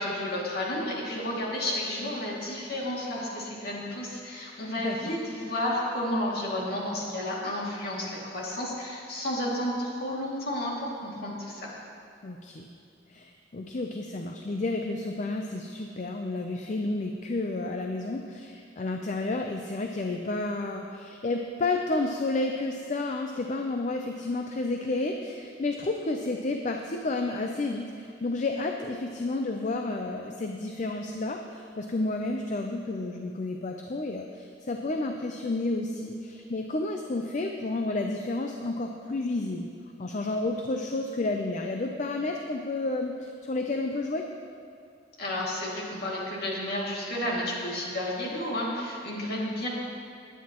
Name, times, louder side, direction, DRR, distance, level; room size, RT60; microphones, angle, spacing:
voice 1, 0.0-11.7 45.2-49.7, left 1 dB, 55° left, -4 dB, 2.4 m, -31 dB
voice 2, 4.8-5.1 12.2-12.7 13.1-39.7 40.0-44.2, left 2 dB, 40° left, 3 dB, 0.5 m, -31 dB
18.5 x 9.4 x 3.0 m, 2.3 s
head